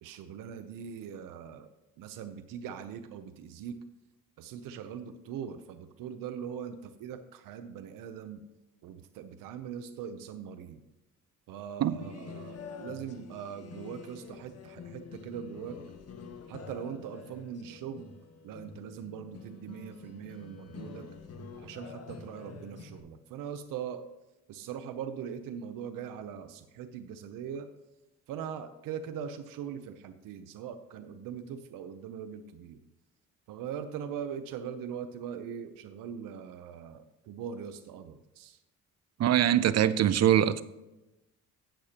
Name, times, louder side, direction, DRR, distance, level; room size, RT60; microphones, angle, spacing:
voice 1, 0.0-1.7 2.0-3.8 4.4-8.4 8.8-10.8 11.5-15.8 16.5-18.1 18.4-21.1 21.5-24.0 24.5-27.7 28.3-32.8 33.5-38.6, right 8 dB, 90° right, 9 dB, 0.7 m, -41 dB
sound 1, 11.9-23.0, left 5 dB, 50° left, 1.3 m, -47 dB
voice 2, 39.2-40.6, right 11 dB, 55° right, 16 dB, 0.6 m, -23 dB
16.5 x 6.6 x 2.9 m, 1.0 s
cardioid pair, 95°, 32 cm